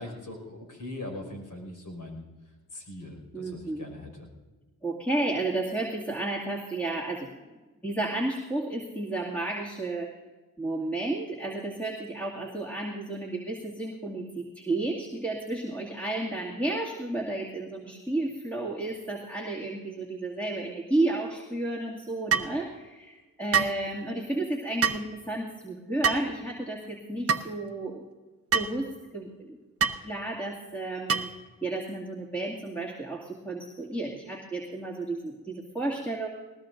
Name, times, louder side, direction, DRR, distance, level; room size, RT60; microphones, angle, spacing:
voice 1, 0.0-2.2 2.7-4.3, left 1 dB, 60° left, 2 dB, 5.5 m, -41 dB
voice 2, 3.3-3.8 4.8-7.4 7.8-10.1 10.6-28.0 28.5-29.6 30.0-31.3 31.6-36.3, right 2 dB, 5° left, -5 dB, 2.4 m, -32 dB
sound 1, 22.3-22.5 23.5-23.8 24.8-25.1 26.0-26.3 27.3-27.5 28.5-28.8 29.8-30.0 31.1-31.4, right 6 dB, 40° right, 0.9 m, -25 dB
20.0 x 19.5 x 2.6 m, 1.2 s
cardioid pair, 75°, 36 cm